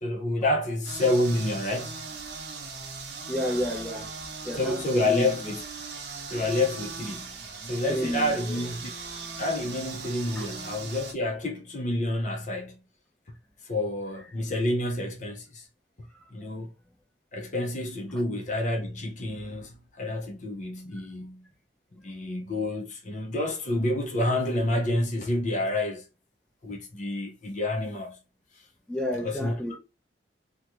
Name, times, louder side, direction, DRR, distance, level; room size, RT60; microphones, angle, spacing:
voice 1, 0.0-1.9 4.6-5.6 6.3-8.9 9.4-12.8 13.6-15.7 16.3-16.7 17.3-21.5 22.0-26.0 26.6-28.2 29.2-29.6, left 1 dB, 40° left, 0.6 m, -29 dB
sound 1, 0.8-11.1, right 4 dB, 60° right, 0.7 m, -39 dB
voice 2, 3.3-4.1 4.4-5.6 7.9-8.7 10.4-10.5 16.1-16.3 18.1-18.2 28.9-29.8, left 1 dB, 5° left, 0.7 m, -31 dB
3.7 x 2.2 x 2.9 m
head